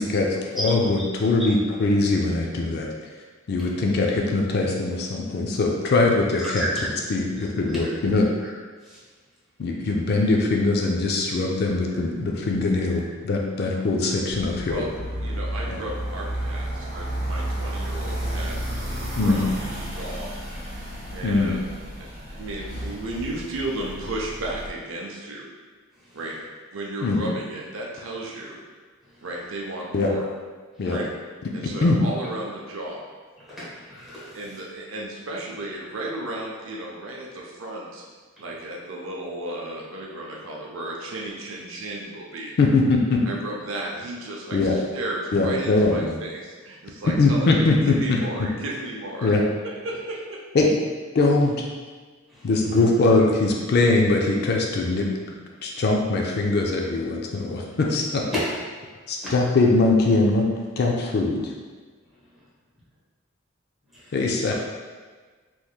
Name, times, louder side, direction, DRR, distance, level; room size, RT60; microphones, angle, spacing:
voice 1, 0.0-2.9 3.5-6.7 7.1-8.3 9.6-14.8 15.7-15.8 19.2-19.4 21.2-21.5 27.0-27.3 29.9-30.1 30.8-31.0 31.8-32.0 42.6-43.2 44.5-44.8 45.3-46.1 47.2-48.5 49.2-49.4 50.5-50.7 51.1-51.5 52.4-55.1 55.6-58.3 59.1-60.5 60.8-61.5 64.1-64.5, left 3 dB, 55° left, 0 dB, 0.4 m, -21 dB
voice 2, 6.4-6.9 7.4-7.9 8.4-8.5 8.8-9.0 26.0-26.2 29.0-29.3 33.4-34.6 38.4-38.7 41.7-41.8 52.3-52.5 59.2-59.4 63.9-64.2 64.5-64.6, equal, ahead, -10 dB, 1.2 m, -35 dB
sound 1, 14.3-24.7, right 1 dB, 45° right, 1.5 m, -32 dB
voice 3, 15.2-18.6 19.1-20.3 21.1-21.7 22.4-25.4 26.1-26.4 26.7-28.6 29.2-30.3 30.8-31.1 31.5-33.0 34.3-38.0 38.4-42.5 43.3-49.3 49.6-50.4, right 1 dB, 75° right, -2 dB, 0.6 m, -34 dB
3.5 x 3.0 x 2.3 m, 1.4 s
head